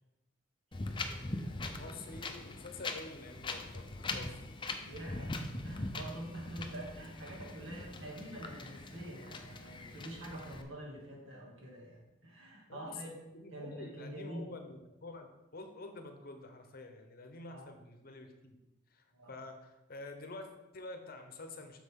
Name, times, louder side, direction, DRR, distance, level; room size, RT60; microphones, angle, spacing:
Wind, 0.7-10.6, left 2 dB, 25° left, 0.5 m, -42 dB
voice 1, 1.7-4.5 12.7-15.3 15.5-18.5 18.9-21.8, left 2 dB, 45° left, 6 dB, 0.9 m, -48 dB
voice 2, 4.8-5.4 5.6-13.1 13.5-14.5 17.5-17.7 19.1-19.3, right 1 dB, 70° right, -2 dB, 2.4 m, -46 dB
7.9 x 6.3 x 3.7 m, 0.99 s
head